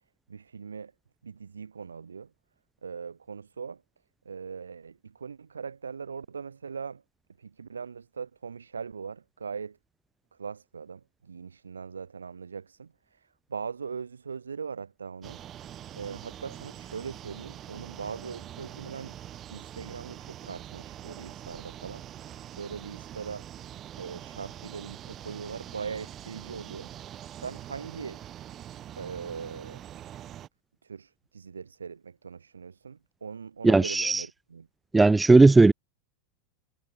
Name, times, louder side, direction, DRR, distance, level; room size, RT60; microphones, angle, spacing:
voice 1, 0.3-0.9 1.2-2.3 2.8-3.8 4.2-7.0 7.4-9.8 10.3-15.4 15.9-19.2 19.5-22.1 22.5-23.5 24.0-26.9 27.4-28.2 29.0-29.8 30.8-34.7, right 6 dB, 80° right, 2.2 m, -40 dB
sound 1, 15.2-30.5, right 11 dB, 35° right, 1.6 m, -44 dB
voice 2, 33.6-34.2 34.9-35.7, right 3 dB, 10° right, 0.4 m, -17 dB
figure-of-eight pair, 85°, 0 cm